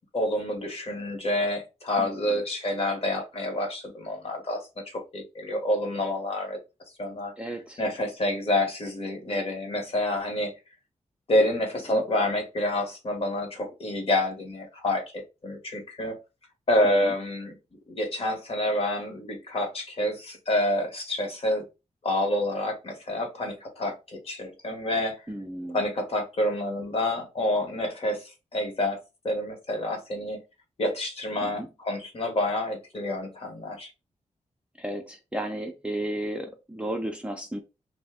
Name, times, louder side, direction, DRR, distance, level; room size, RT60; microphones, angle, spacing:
voice 1, 0.1-4.6 4.9-6.6 7.0-7.3 7.8-10.5 11.3-15.0 15.4-16.1 16.7-17.5 17.9-21.6 22.0-25.2 25.7-29.0 29.2-30.4 30.8-33.9, left 1 dB, 50° left, 3 dB, 1.0 m, -28 dB
voice 2, 2.0-2.4 7.4-7.8 11.9-12.0 16.8-17.1 25.3-25.8 31.4-31.7 34.8-37.6, right 1 dB, 10° right, 2 dB, 0.5 m, -34 dB
2.6 x 2.0 x 3.5 m, 0.27 s
wide cardioid pair, 120°, 12 cm